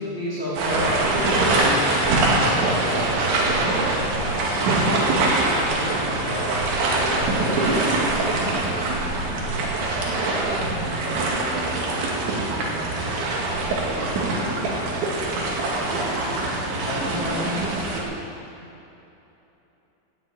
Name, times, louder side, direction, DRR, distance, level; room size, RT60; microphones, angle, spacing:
voice 1, 0.0-6.6 6.9-8.8 16.8-17.6, left 1 dB, 30° left, -8 dB, 2.4 m, -32 dB
sound 1, 0.6-18.0, right 2 dB, 70° right, 4.4 m, -23 dB
18.0 x 8.6 x 8.5 m, 2.9 s
omnidirectional pair, 5.5 m